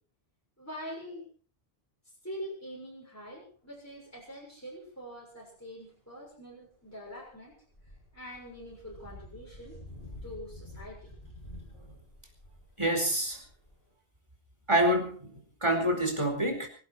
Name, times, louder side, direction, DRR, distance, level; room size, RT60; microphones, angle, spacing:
voice 1, 0.6-1.3 2.2-7.5 8.1-9.8 10.2-11.3, equal, 15° left, -4 dB, 6.6 m, -44 dB
sound 1, 4.3-4.4 6.7-13.9, left 1 dB, 65° left, 7.9 m, -49 dB
voice 2, 12.8-13.4 14.7-15.3 15.6-16.7, right 1 dB, 30° right, 3 dB, 4.7 m, -26 dB
24.5 x 12.0 x 4.5 m, 0.40 s
omnidirectional pair, 1.0 m